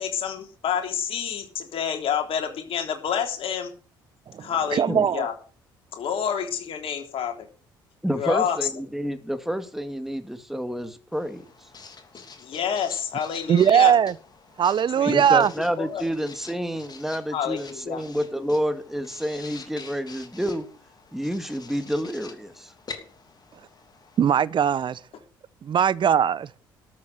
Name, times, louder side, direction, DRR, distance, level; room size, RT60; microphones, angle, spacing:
voice 1, 0.0-3.7 4.4-5.3 5.9-7.5 8.1-8.7 12.4-13.9 14.9-15.5 15.8-16.0 17.3-18.0, left 8 dB, 55° left, 3.5 m, -28 dB
voice 2, 4.3-5.3 13.5-14.1 14.6-15.5 24.2-25.0 25.6-26.5, right 8 dB, 45° right, 0.9 m, -20 dB
voice 3, 8.0-11.5 15.1-20.7 21.1-22.7, equal, 5° right, 2.1 m, -29 dB
Writing, 11.1-24.4, left 5 dB, 35° left, 3.2 m, -46 dB
13.0 x 7.5 x 7.8 m
hypercardioid pair, 55°, 11 cm